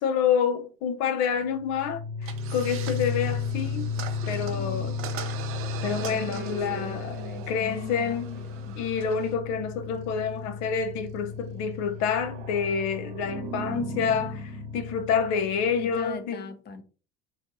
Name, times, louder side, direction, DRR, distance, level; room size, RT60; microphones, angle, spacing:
voice 1, 0.0-3.9 4.3-4.9 5.8-7.2 7.5-8.4 8.8-16.4, left 7 dB, 65° left, 0.7 m, -28 dB
sound 1, 1.4-16.1, left 3 dB, 75° right, 0.9 m, -34 dB
sound 2, 2.2-9.3, right 9 dB, 50° right, 0.6 m, -42 dB
voice 2, 4.2-5.1 6.0-8.8 15.8-16.8, left 5 dB, 35° left, 0.8 m, -42 dB
3.2 x 2.6 x 4.5 m
supercardioid pair, 95°, 29 cm